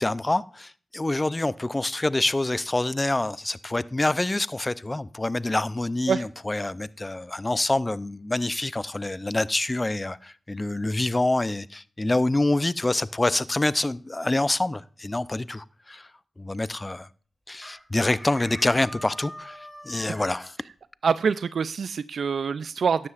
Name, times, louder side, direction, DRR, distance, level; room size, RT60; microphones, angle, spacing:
voice 1, 0.0-16.1 16.4-17.1 17.5-19.6 19.8-20.5, left 2 dB, 25° left, 0.5 m, -26 dB
Chicken rooster, 17.6-20.5, equal, 5° left, 2.9 m, -42 dB
voice 2, 21.0-23.1, right 6 dB, 75° right, 0.3 m, -25 dB
13.0 x 9.7 x 2.4 m
cardioid pair, 55°, 0 cm